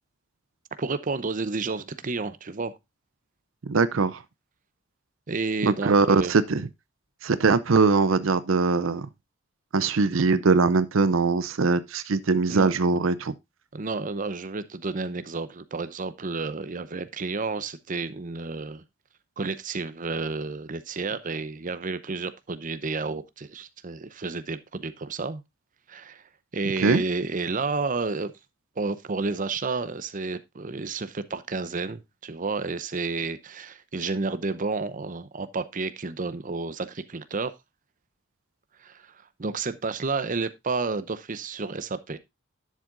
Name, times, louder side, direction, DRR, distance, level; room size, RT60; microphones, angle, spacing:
voice 1, 0.8-2.7 5.3-6.3 12.5-12.7 13.7-18.8 19.4-25.4 25.9-26.2 26.5-28.3 28.8-37.5 38.8-39.1 39.4-42.2, right 3 dB, 40° right, 0.7 m, -31 dB
voice 2, 3.7-4.2 5.6-6.7 7.2-9.1 9.7-13.3 26.8-27.0, right 4 dB, 75° right, 0.6 m, -22 dB
11.0 x 7.4 x 2.5 m
head